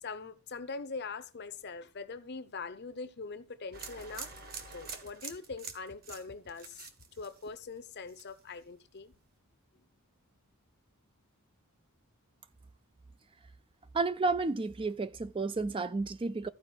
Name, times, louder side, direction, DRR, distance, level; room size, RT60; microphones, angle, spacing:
voice 1, 0.0-4.3 4.7-6.9 7.2-9.1, left 4 dB, 50° left, 0.8 m, -42 dB
sound 1, 3.7-7.8 8.1-8.6, right 5 dB, 45° right, 1.3 m, -46 dB
voice 2, 13.9-16.5, right 3 dB, 25° right, 0.4 m, -31 dB
14.5 x 4.9 x 4.5 m
head